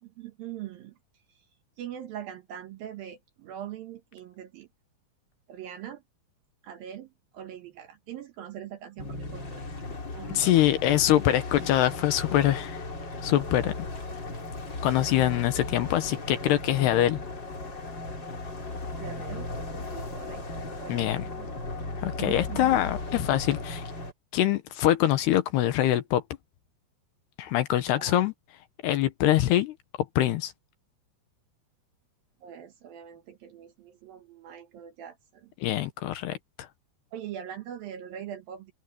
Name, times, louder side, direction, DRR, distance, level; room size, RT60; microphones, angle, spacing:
voice 1, 0.0-1.0 1.8-4.7 5.5-6.0 6.6-9.6 9.9-10.7 10.9-11.0 19.0-19.5 19.8-21.5 22.2-22.9 28.0-28.2 32.4-35.5 37.1-38.7, right 10 dB, 65° right, 2.5 m, -42 dB
sound 1, 9.0-24.1, left 2 dB, 25° left, 3.8 m, -36 dB
voice 2, 10.3-12.8 13.2-13.7 14.8-17.2 20.9-21.2 22.0-23.8 24.3-26.2 27.4-28.3 28.8-29.7 30.2-30.5 35.6-36.7, left 13 dB, 75° left, 2.9 m, -24 dB
open air
omnidirectional pair, 5.3 m